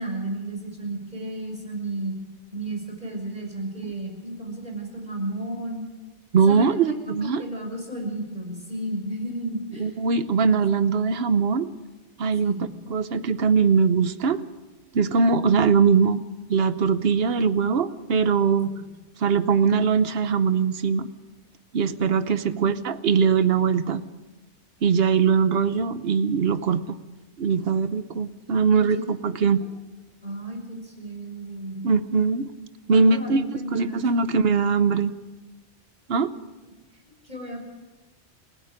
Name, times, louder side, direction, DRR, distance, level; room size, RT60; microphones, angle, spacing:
voice 1, 0.0-2.2 2.5-5.8 6.5-9.9 12.4-12.7 18.7-18.8 22.5-22.7 28.7-29.0 29.6-29.7 30.2-31.9 32.9-34.0 37.2-37.6, right 1 dB, 35° right, 1 dB, 6.2 m, -33 dB
voice 2, 6.3-7.4 9.8-11.7 12.2-12.5 12.9-14.4 14.9-16.2 16.5-18.7 19.2-21.1 21.7-24.0 24.8-26.8 27.4-29.6 31.8-32.5 32.9-35.1 36.1-36.3, right 5 dB, 60° right, 12 dB, 1.1 m, -21 dB
30.0 x 17.0 x 5.1 m, 1.1 s
omnidirectional pair, 1.2 m